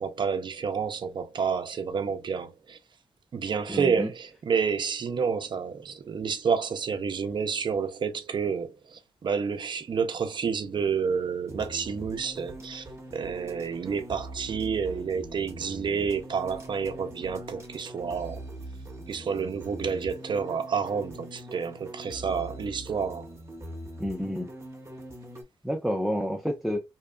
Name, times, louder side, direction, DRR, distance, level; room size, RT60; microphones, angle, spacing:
voice 1, 0.0-2.8 3.3-12.9 13.1-18.4 19.1-23.3, right 6 dB, 50° right, 0.5 m, -29 dB
voice 2, 3.7-4.1 24.0-24.5 25.6-26.8, equal, ahead, 0.5 m, -29 dB
sound 1, 11.5-25.4, right 1 dB, 30° right, 0.8 m, -42 dB
2.8 x 2.3 x 2.2 m
cardioid pair, 60°, 10 cm